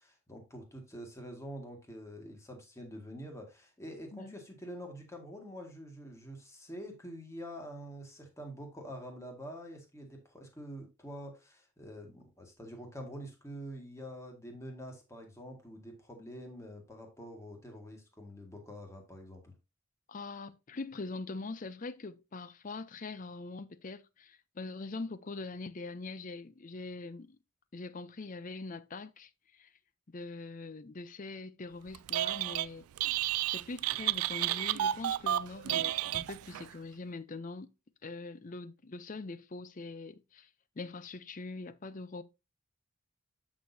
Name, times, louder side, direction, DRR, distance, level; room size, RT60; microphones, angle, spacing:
voice 1, 0.0-19.5, equal, 15° left, 1.8 m, -46 dB
voice 2, 20.1-27.4 27.7-29.7 30.1-33.1 33.5-37.7 38.0-40.5 40.8-42.2, left 3 dB, 35° left, 0.5 m, -43 dB
Telephone, 31.9-32.7 33.0-36.7, right 13 dB, 90° right, 0.3 m, -31 dB
8.4 x 6.2 x 2.7 m
head